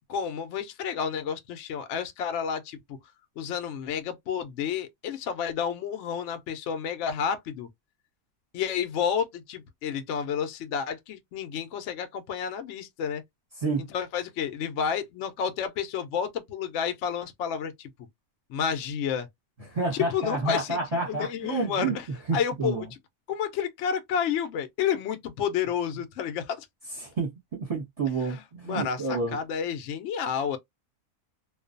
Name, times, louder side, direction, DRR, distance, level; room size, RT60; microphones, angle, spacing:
voice 1, 0.1-2.8 3.4-7.7 8.5-13.2 13.9-17.9 18.5-19.3 19.9-20.8 21.1-22.1 22.3-22.9 23.3-26.7 28.3-28.4 28.7-30.6, left 7 dB, 65° left, 0.7 m, -30 dB
voice 2, 19.7-22.0 22.3-22.8 27.0-29.4, right 3 dB, 30° right, 0.9 m, -29 dB
2.4 x 2.3 x 2.5 m
omnidirectional pair, 1.6 m